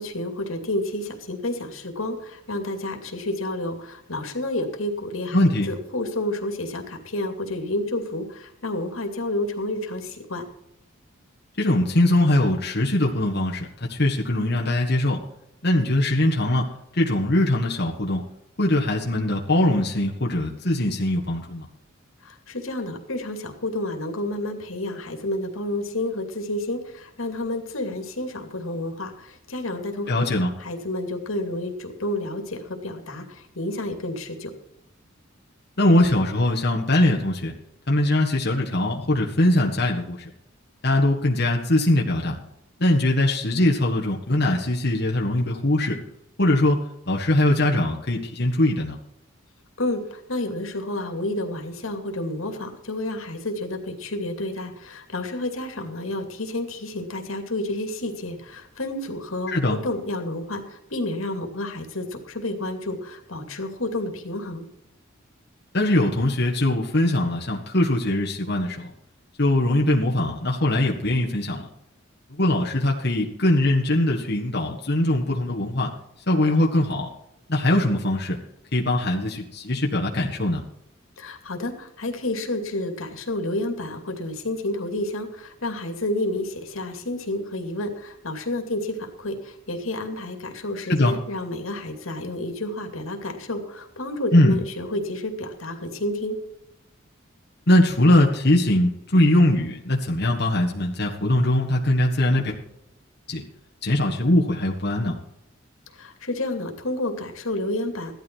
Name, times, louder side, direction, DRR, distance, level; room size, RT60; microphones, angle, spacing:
voice 1, 0.0-5.4 5.7-10.4 22.2-34.5 49.8-64.7 81.2-96.4 105.9-108.1, left 1 dB, 85° left, 4 dB, 2.6 m, -30 dB
voice 2, 5.3-5.7 11.6-15.2 15.6-18.2 18.6-21.7 30.1-30.5 35.8-37.5 37.9-40.3 40.8-42.4 42.8-46.0 46.4-49.0 59.5-59.8 65.7-68.9 69.4-71.6 72.3-75.9 76.3-77.1 77.5-78.4 78.7-80.6 90.9-91.1 94.3-94.6 97.7-102.5 103.3-103.4 103.8-105.2, left 1 dB, 50° left, -1 dB, 1.7 m, -21 dB
16.0 x 12.5 x 4.7 m, 0.83 s
head